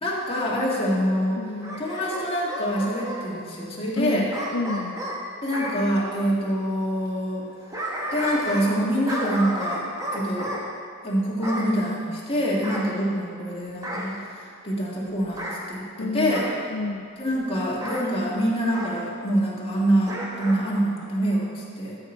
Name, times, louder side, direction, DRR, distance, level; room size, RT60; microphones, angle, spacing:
voice 1, 0.0-1.4 1.8-4.3 5.4-7.4 8.1-9.9 10.1-10.5 11.0-16.5 17.2-22.0, equal, 25° left, -5 dB, 1.8 m, -25 dB
voice 2, 1.4-1.8 4.0-4.2 4.5-5.0 16.0-16.3 16.7-17.1, left 2 dB, 75° left, 3 dB, 0.6 m, -29 dB
Bark / Growling, 1.6-3.2 4.3-5.8 7.4-8.8 9.1-10.6 11.4-11.7 12.6-13.4 13.8-14.2 15.3-15.6 16.3-16.6 17.8-18.1 18.7-18.9 20.0-20.6 21.0-21.1, equal, 15° right, 1.2 m, -32 dB
13.5 x 5.9 x 4.4 m, 2.4 s
head